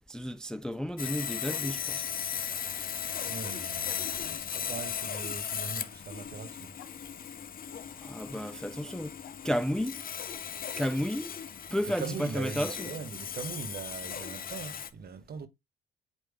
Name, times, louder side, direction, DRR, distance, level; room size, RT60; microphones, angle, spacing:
voice 1, 0.1-2.0 8.0-9.2 9.4-10.0 10.8-11.3 11.7-12.9, equal, 5° left, 0.3 m, -32 dB
Sawing, 1.0-14.9, left 8 dB, 45° left, 0.7 m, -37 dB
voice 2, 3.2-6.8 11.9-15.5, right 6 dB, 50° right, 1.2 m, -41 dB
sound 1, 6.7-6.9 7.7-8.2 9.0-9.4 10.3-10.5, left 8 dB, 70° left, 1.2 m, -53 dB
8.4 x 3.3 x 3.5 m
cardioid pair, 90°, 20 cm